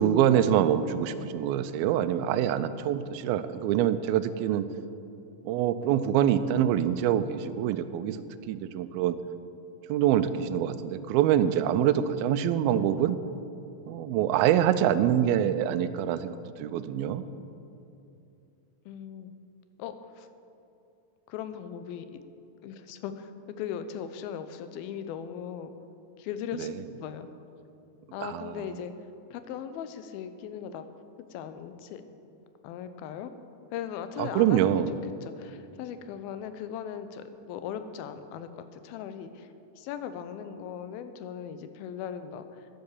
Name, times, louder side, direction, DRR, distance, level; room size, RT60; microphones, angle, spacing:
voice 1, 0.0-4.7 5.5-9.2 9.9-13.2 13.9-17.2 26.6-26.7 28.2-28.5 34.2-34.9, right 10 dB, 90° right, 12 dB, 2.4 m, -25 dB
voice 2, 18.9-19.3 19.8-20.3 21.3-22.2 22.6-23.3 23.6-25.7 26.2-26.7 27.0-27.3 28.1-28.9 29.3-30.9 31.3-32.0 32.6-33.3 33.7-42.7, left 8 dB, 90° left, 10 dB, 2.6 m, -38 dB
10.5 x 10.0 x 7.2 m, 2.7 s
omnidirectional pair, 4.2 m